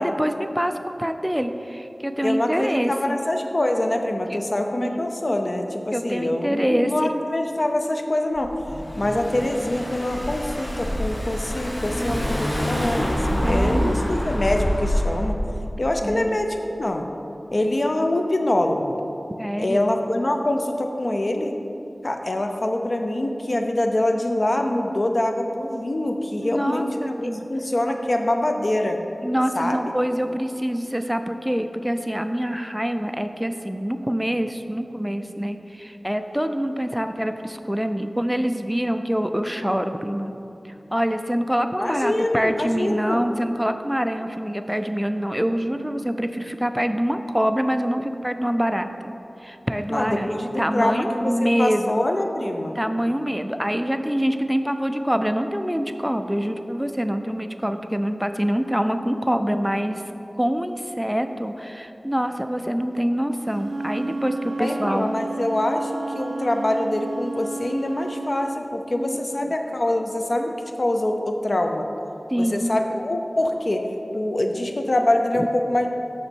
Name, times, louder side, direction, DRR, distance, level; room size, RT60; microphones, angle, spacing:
voice 1, 0.0-2.9 4.3-4.4 4.8-4.9 5.3-5.4 5.9-6.9 13.4-14.0 16.0-16.4 19.4-19.8 26.4-27.5 29.2-40.4 40.9-49.1 49.4-52.1 52.7-60.0 60.4-65.1 68.9-69.5 72.3-72.8 75.3-75.5, equal, 5° right, 8 dB, 0.4 m, -25 dB
voice 2, 2.2-8.5 9.0-15.4 15.8-17.1 17.5-19.0 19.6-21.5 22.0-29.0 29.6-29.8 41.8-43.2 49.9-52.8 64.6-70.5 70.8-71.9 72.4-73.8 74.1-75.9, left 1 dB, 55° left, 4 dB, 0.6 m, -24 dB
Car / Engine, 8.4-15.3, equal, 40° left, 1.3 m, -26 dB
Wind instrument woodwind instrument, 63.5-68.5, right 2 dB, 75° right, 0.5 m, -31 dB
6.8 x 6.3 x 4.5 m, 2.7 s
wide cardioid pair, 60°, 0 cm